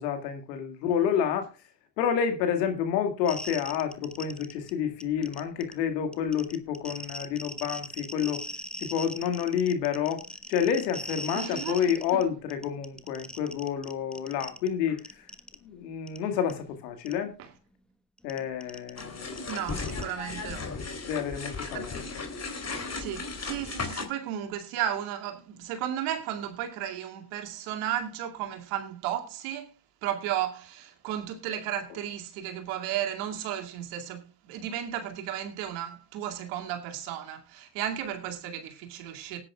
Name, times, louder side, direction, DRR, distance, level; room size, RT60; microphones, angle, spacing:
voice 1, 0.0-1.5 2.0-8.4 8.8-10.2 10.5-15.2 15.6-17.3 18.2-19.6 21.0-22.1, left 8 dB, 85° left, 2.2 m, -29 dB
sound 1, 3.3-4.7 5.0-5.7 6.1-12.2 12.5-14.7 15.0-15.5 16.1-16.2 16.5-16.6 17.1-17.2 18.2-20.0, equal, ahead, 1.2 m, -39 dB
voice 2, 11.3-11.8 12.1-12.2 19.5-20.7 21.7-21.9 22.9-29.7 30.0-39.4, right 10 dB, 80° right, 2.5 m, -34 dB
sound 2, 19.0-24.1, left 4 dB, 30° left, 3.1 m, -36 dB
19.0 x 9.7 x 2.3 m
hypercardioid pair, 55°, 49 cm